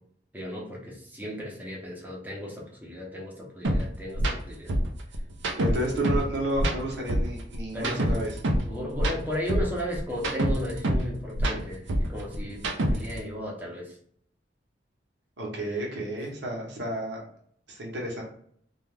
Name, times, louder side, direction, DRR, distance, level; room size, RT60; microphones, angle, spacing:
voice 1, 0.3-4.7 7.7-8.1 8.7-14.0 15.6-15.9, equal, 10° right, -2 dB, 0.7 m, -35 dB
sound 1, 3.6-3.8 4.1-4.3 4.7-6.3 6.5-8.7 8.9-11.1 11.3-13.2, right 1 dB, 90° right, 0.5 m, -26 dB
voice 2, 5.6-8.3 15.4-17.2 17.7-18.2, right 1 dB, 70° right, -1 dB, 0.9 m, -31 dB
2.4 x 2.3 x 3.2 m, 0.62 s
head